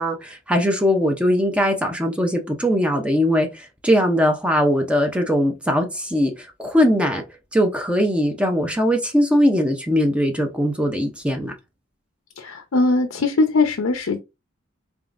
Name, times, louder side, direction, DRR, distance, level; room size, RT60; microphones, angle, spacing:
voice 1, 0.0-7.2 7.5-11.5, equal, 5° right, 0.5 m, -20 dB
voice 2, 12.4-14.2, left 3 dB, 85° left, 0.6 m, -20 dB
3.9 x 3.5 x 2.5 m
head